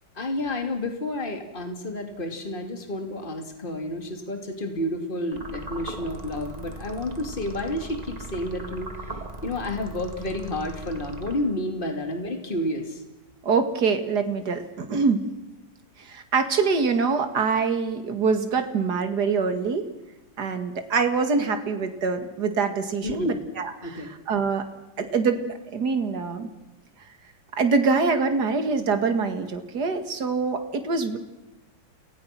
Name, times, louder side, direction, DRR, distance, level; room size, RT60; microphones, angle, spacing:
voice 1, 0.2-8.9 9.4-13.0 23.0-23.4 23.8-24.1, left 1 dB, 25° left, 4 dB, 2.9 m, -30 dB
sound 1, 5.3-11.8, right 2 dB, 20° right, 1.8 m, -39 dB
voice 2, 13.4-15.2 16.0-19.9 20.4-24.7 25.0-25.4 25.7-26.5 27.5-31.2, right 4 dB, 60° right, 7 dB, 2.6 m, -24 dB
29.5 x 20.0 x 6.0 m, 1.0 s
omnidirectional pair, 2.0 m